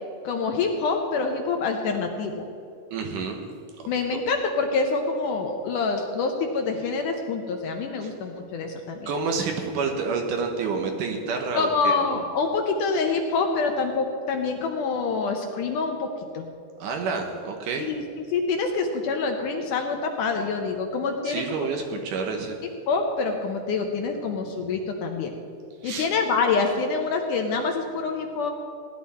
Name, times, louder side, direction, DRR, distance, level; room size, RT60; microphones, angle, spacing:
voice 1, 0.2-2.4 3.9-9.1 11.5-16.1 16.3-16.5 17.8-18.0 18.3-21.7 22.9-25.3 25.8-28.5, left 4 dB, 75° left, 3 dB, 2.1 m, -26 dB
voice 2, 2.9-3.4 8.0-8.1 9.1-12.1 16.8-17.9 21.2-22.6 25.8-26.1, right 4 dB, 70° right, 3 dB, 2.3 m, -29 dB
17.0 x 11.0 x 4.2 m, 2.5 s
omnidirectional pair, 4.3 m